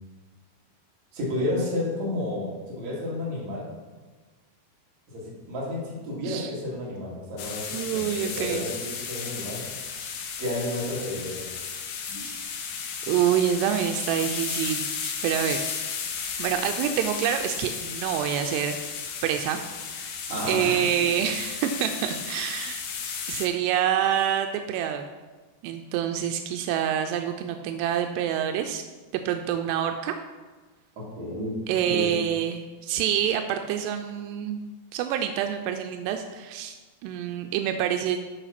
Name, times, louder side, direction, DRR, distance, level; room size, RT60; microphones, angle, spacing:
voice 1, 1.1-3.7 5.1-9.6 10.4-11.5 12.1-12.3 20.3-20.8 21.2-21.3 31.0-32.3, left 1 dB, 50° right, -4 dB, 3.2 m, -31 dB
sound 1, 7.4-23.5, left 6 dB, 75° left, 2.6 m, -34 dB
voice 2, 7.7-8.7 12.1-12.5 13.1-15.6 16.4-19.6 20.0-20.1 20.5-22.8 23.3-25.0 25.6-28.8 29.1-30.2 31.7-34.6 34.9-36.8 37.0-38.2, right 9 dB, 85° right, 6 dB, 2.7 m, -27 dB
11.0 x 4.8 x 5.8 m, 1.3 s
omnidirectional pair, 4.8 m